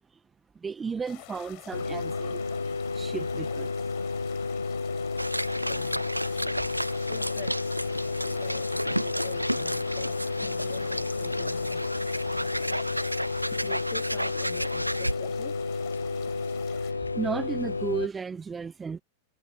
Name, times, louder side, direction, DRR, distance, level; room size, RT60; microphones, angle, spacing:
voice 1, 0.5-3.7 4.1-4.2 8.2-8.4 12.7-13.0 16.1-16.4 16.8-19.0, right 5 dB, 15° right, 1.7 m, -35 dB
sound 1, 1.0-16.9, left 40 dB or more, 45° left, 4.4 m, -49 dB
sound 2, 1.7-18.1, left 4 dB, 80° left, 0.7 m, -31 dB
sound 3, 5.2-15.1, right 1 dB, 90° right, 0.5 m, -33 dB
voice 2, 5.6-6.6 7.0-7.8 8.4-11.8 13.5-15.6, left 8 dB, 25° left, 3.1 m, -47 dB
figure-of-eight pair, 90°, 0 cm